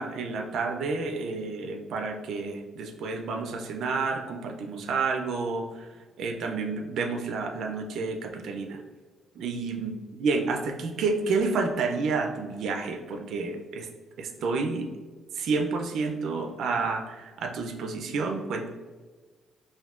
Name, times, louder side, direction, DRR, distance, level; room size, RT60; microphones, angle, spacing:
voice 1, 0.0-5.9 6.2-8.8 9.4-13.9 14.2-14.9 15.3-18.7, right 4 dB, 75° right, 4 dB, 0.3 m, -30 dB
3.4 x 2.5 x 2.3 m, 1.3 s
cardioid pair, 90°, 0 cm